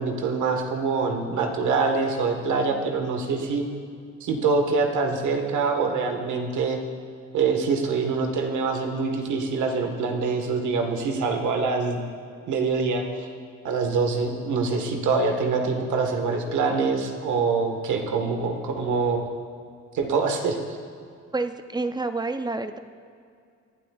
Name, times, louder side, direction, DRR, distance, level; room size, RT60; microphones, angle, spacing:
voice 1, 0.0-3.6 4.2-6.8 7.3-12.0 12.5-13.3 13.6-19.2 19.9-20.6, right 4 dB, 75° right, 3 dB, 1.5 m, -25 dB
voice 2, 21.3-22.8, right 3 dB, 15° right, 9 dB, 0.5 m, -28 dB
20.0 x 11.5 x 2.4 m, 2.3 s
cardioid pair, 90°, 30 cm